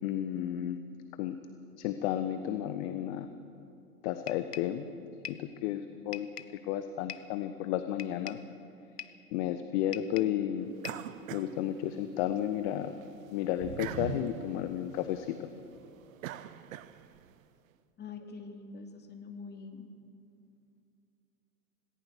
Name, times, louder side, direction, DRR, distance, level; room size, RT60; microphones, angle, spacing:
voice 1, 0.0-0.8 1.2-1.4 1.8-3.3 4.0-4.9 5.3-6.3 6.6-8.4 9.3-10.7 11.3-12.9 13.3-15.5, left 11 dB, 45° left, 9 dB, 1.3 m, -32 dB
sound 1, 4.3-4.8 5.2-5.5 6.1-6.6 7.1-7.4 8.0-8.5 9.0-9.3 9.9-10.4 10.8-11.1, left 9 dB, 80° left, 1.1 m, -44 dB
sound 2, 10.8-12.4 12.8-17.3, right 11 dB, 60° right, 1.0 m, -43 dB
voice 2, 18.0-19.9, left 4 dB, 20° left, 4 dB, 2.6 m, -45 dB
27.0 x 18.5 x 6.7 m, 2.5 s
figure-of-eight pair, 100°, 47 cm